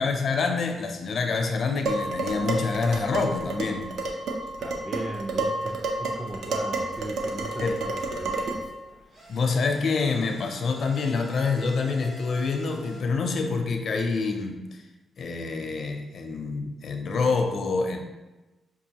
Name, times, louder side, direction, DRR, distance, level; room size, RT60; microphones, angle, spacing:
voice 1, 0.0-3.9 7.6-7.7 9.3-14.8 15.2-18.0, left 4 dB, 55° left, 4 dB, 0.5 m, -26 dB
Dishes pots and pans, 1.9-8.7, right 2 dB, 75° right, 0.5 m, -30 dB
voice 2, 4.6-8.6, right 2 dB, 20° right, 4 dB, 0.3 m, -38 dB
sound 1, 8.8-13.0, right 1 dB, 40° right, 1.0 m, -48 dB
5.4 x 2.4 x 2.9 m, 1.1 s
cardioid pair, 130°, 0 cm